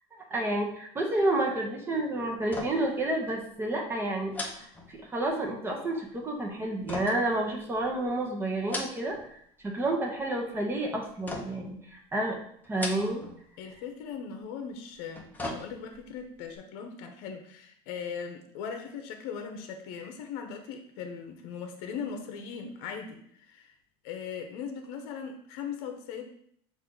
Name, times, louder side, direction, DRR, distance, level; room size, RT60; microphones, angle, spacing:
voice 1, 0.3-12.4 12.7-13.2, right 1 dB, 15° right, 0 dB, 0.8 m, -30 dB
sound 1, 2.4-3.0 3.3-3.4 4.3-5.4 6.9-8.0 8.5-9.3 9.6-10.2 11.3-11.8 12.6-13.4 13.7-13.8 14.9-16.1 16.5-16.6, left 2 dB, 15° left, 0.6 m, -39 dB
voice 2, 13.6-23.7 24.0-26.2, left 6 dB, 75° left, 6 dB, 0.7 m, -39 dB
5.5 x 2.5 x 3.8 m, 0.66 s
cardioid pair, 145°, 13 cm